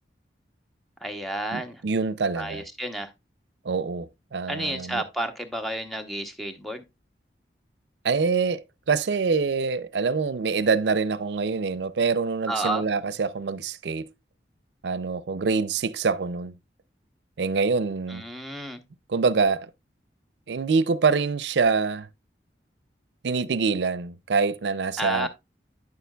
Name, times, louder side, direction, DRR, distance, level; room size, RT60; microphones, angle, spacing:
voice 1, 1.0-1.8 2.4-3.1 4.5-6.8 12.5-12.8 18.1-18.8 25.0-25.3, right 1 dB, ahead, 0.8 m, -31 dB
voice 2, 1.5-2.6 3.6-5.0 8.0-14.0 14.8-16.5 17.4-18.2 19.1-19.7 20.5-22.1 23.2-25.3, right 4 dB, 80° right, 0.5 m, -25 dB
9.5 x 6.8 x 2.2 m
head